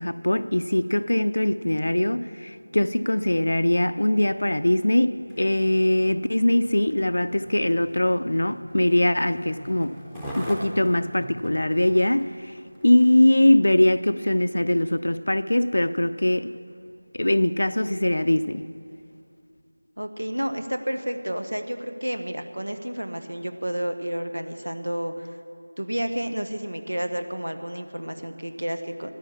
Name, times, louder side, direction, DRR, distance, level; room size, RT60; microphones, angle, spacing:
voice 1, 0.0-10.0 10.4-12.5 12.8-16.5 17.1-18.7, left 1 dB, 65° left, 0.5 m, -22 dB
Skateboard, 5.2-14.0 14.6-14.7, equal, 5° right, 0.8 m, -43 dB
voice 2, 20.0-25.3 25.8-29.1, equal, 85° right, 1.2 m, -30 dB
16.5 x 11.5 x 7.2 m
figure-of-eight pair, 170°, 0 cm